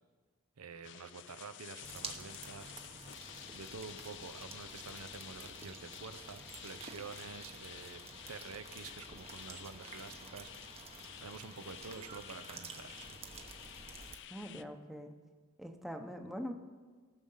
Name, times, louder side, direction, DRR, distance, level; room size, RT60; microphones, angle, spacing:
voice 1, 0.6-2.7 3.5-10.5 11.2-13.2, right 5 dB, 75° right, 11 dB, 0.7 m, -48 dB
sound 1, 0.8-14.6, left 11 dB, 55° left, 0.4 m, -51 dB
sound 2, 1.8-14.2, right 4 dB, 30° right, 1.0 m, -51 dB
voice 2, 14.3-15.1 15.6-16.5, equal, ahead, 4 dB, 0.8 m, -43 dB
18.5 x 6.6 x 5.6 m, 1.4 s
head